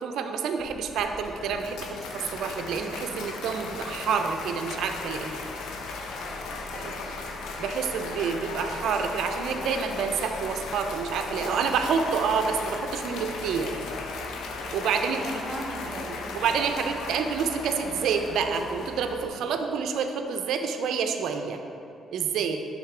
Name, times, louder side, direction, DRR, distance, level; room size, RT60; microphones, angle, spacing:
voice 1, 0.0-5.3 6.7-6.9 7.6-13.8 14.7-15.3 16.3-21.6 22.1-22.7, right 6 dB, 75° right, 6 dB, 0.4 m, -28 dB
sound 1, 0.6-19.3, left 1 dB, 30° left, 0.7 m, -45 dB
Cheering / Applause, 0.9-19.6, left 3 dB, 85° left, 0.5 m, -37 dB
voice 2, 6.1-7.3 15.1-16.6, equal, 20° right, -4 dB, 1.4 m, -40 dB
6.4 x 3.5 x 4.8 m, 2.8 s
cardioid pair, 90°, 0 cm